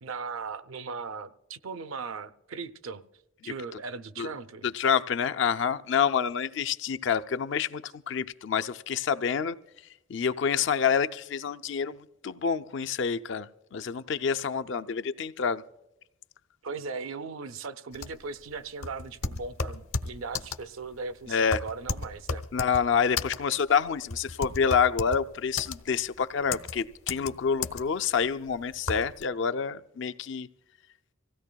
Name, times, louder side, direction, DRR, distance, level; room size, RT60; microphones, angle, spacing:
voice 1, 0.0-3.0 3.4-4.7 16.6-22.4, right 4 dB, 75° right, 0.6 m, -38 dB
voice 2, 4.7-9.6 10.1-12.0 12.2-15.6 21.3-21.6 22.5-30.5, left 6 dB, 60° left, 0.4 m, -27 dB
sound 1, 17.9-29.2, left 4 dB, 85° left, 0.9 m, -34 dB
25.5 x 16.5 x 2.2 m
head